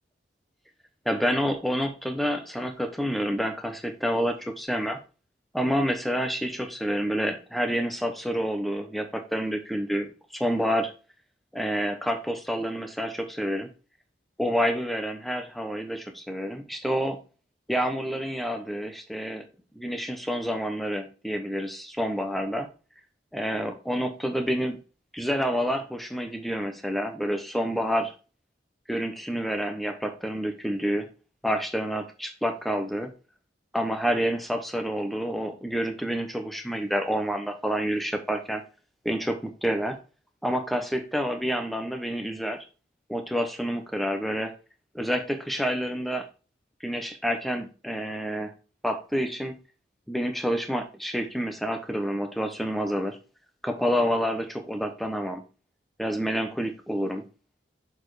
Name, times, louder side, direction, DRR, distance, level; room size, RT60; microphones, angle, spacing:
voice 1, 1.0-5.0 5.5-10.9 11.5-13.7 14.4-17.2 17.7-19.4 19.7-22.7 23.3-24.8 25.1-28.1 28.9-31.1 31.4-33.1 33.7-38.6 39.0-40.0 40.4-42.7 43.1-44.5 44.9-46.3 46.8-48.5 48.8-49.5 50.1-53.2 53.6-55.4 56.0-57.2, equal, ahead, 5 dB, 0.9 m, -28 dB
6.8 x 4.7 x 4.8 m, 0.34 s
head